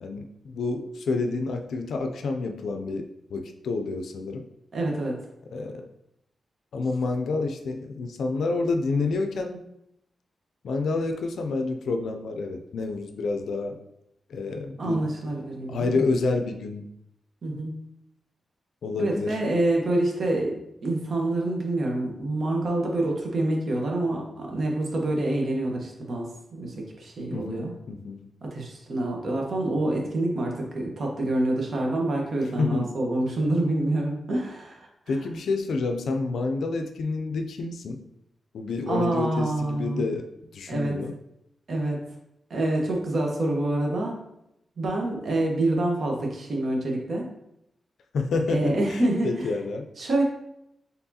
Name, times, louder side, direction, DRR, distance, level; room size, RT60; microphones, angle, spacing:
voice 1, 0.0-4.5 5.5-5.9 6.7-9.6 10.6-13.8 14.3-15.0 15.7-16.8 18.8-19.4 27.3-28.3 32.6-32.9 35.1-38.0 38.5-40.3 40.5-41.1 48.1-49.9, left 3 dB, 85° left, 5 dB, 0.4 m, -28 dB
voice 2, 4.7-5.2 14.8-16.0 17.4-17.7 19.0-27.7 28.4-34.9 38.9-40.0 40.7-41.0 41.7-42.0 42.5-44.2 44.8-47.3 48.5-49.5 50.0-50.2, right 2 dB, 55° right, 0 dB, 1.0 m, -27 dB
4.5 x 3.4 x 2.8 m, 0.81 s
wide cardioid pair, 100°, 0 cm